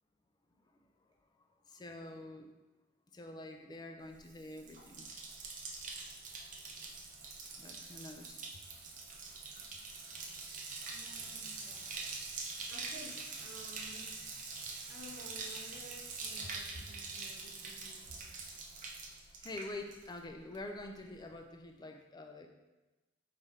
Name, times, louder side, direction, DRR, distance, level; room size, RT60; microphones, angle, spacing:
voice 1, 1.7-2.5 3.1-5.1 7.6-8.5 19.4-22.5, left 2 dB, 20° left, 4 dB, 0.4 m, -46 dB
Bathtub (filling or washing), 4.2-20.3 20.5-21.1, right 4 dB, 45° right, 0.6 m, -44 dB
voice 2, 10.9-12.0 12.3-14.1 14.4-18.1, right 1 dB, 75° right, -3 dB, 1.1 m, -54 dB
4.2 x 3.4 x 3.6 m, 1.1 s
head